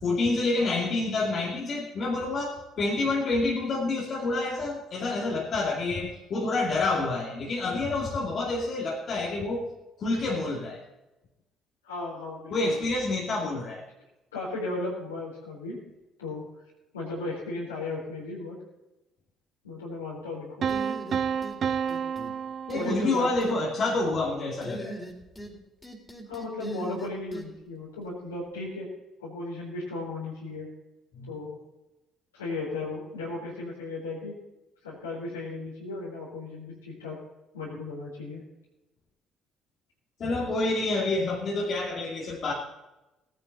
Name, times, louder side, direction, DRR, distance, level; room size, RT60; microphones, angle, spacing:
voice 1, 0.0-9.7 10.0-10.8 12.5-13.8 22.7-25.0 31.1-31.3 40.2-42.5, left 2 dB, 50° left, -2 dB, 2.5 m, -28 dB
voice 2, 11.8-12.8 14.3-15.8 16.2-16.4 16.9-18.6 19.6-20.7 22.7-23.3 26.3-28.9 29.2-30.7 31.3-31.6 32.3-34.4 34.8-37.2 37.5-38.4, left 2 dB, 90° left, -6 dB, 3.9 m, -35 dB
sound 1, 20.6-23.5, right 7 dB, 50° right, 0.6 m, -30 dB
sound 2, 20.7-21.6 21.9-22.3 22.7-23.6 24.6-25.5 25.8-27.5, right 1 dB, 15° left, 3.9 m, -39 dB
18.0 x 10.0 x 4.1 m, 0.98 s
hypercardioid pair, 50°, 0 cm